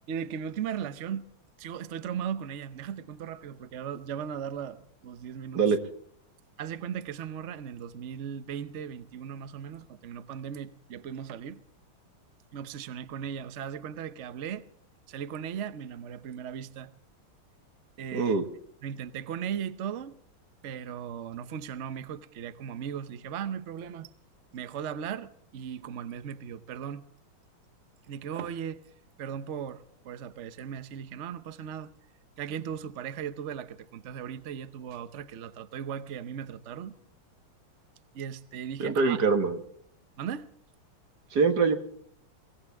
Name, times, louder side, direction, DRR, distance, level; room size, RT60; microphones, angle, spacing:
voice 1, 0.1-1.3 1.6-5.6 6.6-11.6 12.5-14.6 15.1-16.9 18.0-18.4 18.8-20.2 20.6-24.1 24.5-27.0 28.1-28.8 29.2-31.9 32.4-37.0 38.1-39.2 40.2-40.5, right 8 dB, 75° right, 0.6 m, -37 dB
voice 2, 18.1-18.4 38.8-39.6 41.3-41.7, right 4 dB, 50° right, 2.1 m, -23 dB
23.0 x 17.0 x 3.5 m
omnidirectional pair, 2.4 m